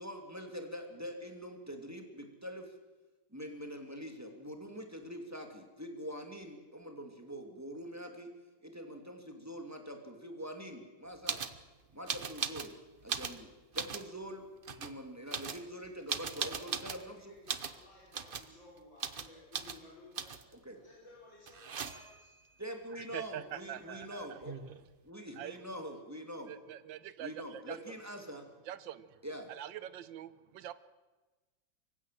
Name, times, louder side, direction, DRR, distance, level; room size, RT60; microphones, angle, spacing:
voice 1, 0.0-2.7 3.3-8.3 8.6-11.5 11.9-12.7 13.0-13.5 13.7-14.4 14.8-17.4 20.6-20.8 22.6-24.5 25.0-26.5 27.2-28.5 29.2-29.5, equal, 10° right, 4 dB, 2.7 m, -44 dB
sound 1, 11.3-11.6 12.1-12.7 13.0-14.1 14.6-14.9 15.3-17.1 17.5-17.8 18.1-18.5 19.0-19.3 19.5-19.8 20.2-20.5 21.5-22.2 24.0-24.1 24.3-24.9, right 6 dB, 40° right, 0.8 m, -38 dB
voice 2, 16.3-16.9 17.3-20.3 20.7-22.3, left 2 dB, 75° left, -5 dB, 5.6 m, -57 dB
voice 3, 23.0-24.4 25.4-25.6 26.5-27.8 28.7-29.2 29.5-30.7, right 11 dB, 80° right, 15 dB, 1.6 m, -44 dB
25.0 x 15.5 x 7.6 m, 1.2 s
omnidirectional pair, 2.1 m